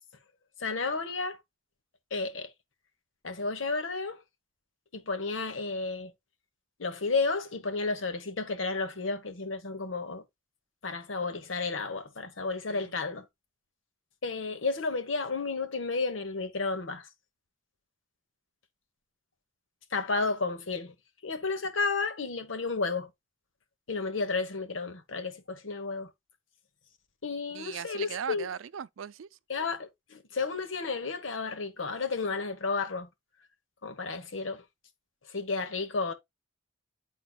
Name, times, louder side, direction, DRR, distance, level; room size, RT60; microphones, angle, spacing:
voice 1, 0.6-1.4 2.1-2.5 3.2-4.2 4.9-6.1 6.8-10.2 10.8-13.3 14.2-17.1 19.9-20.9 21.2-23.1 23.9-26.1 27.2-28.5 29.5-33.1 33.8-34.6 35.3-36.1, left 4 dB, 80° left, 1.2 m, -32 dB
voice 2, 27.5-29.3, right 8 dB, 85° right, 0.4 m, -38 dB
10.0 x 3.9 x 2.3 m
head